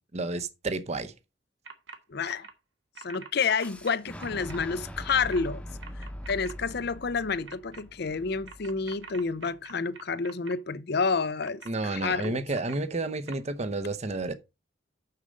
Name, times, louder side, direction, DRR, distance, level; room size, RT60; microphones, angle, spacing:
voice 1, 0.1-1.1 11.7-14.3, right 2 dB, 35° right, 0.8 m, -31 dB
sound 1, 1.7-2.0 2.2-2.5 3.0-4.6 5.1-5.4 5.8-6.5 7.5-7.8 8.5-10.5 11.4-12.8 13.3-13.4, right 5 dB, 75° right, 1.5 m, -45 dB
voice 2, 2.1-2.5 3.0-5.6 6.0-12.4, left 5 dB, 60° left, 0.6 m, -29 dB
Fire / Explosion, 3.6-9.5, equal, 5° left, 0.9 m, -42 dB
6.7 x 6.6 x 5.1 m
head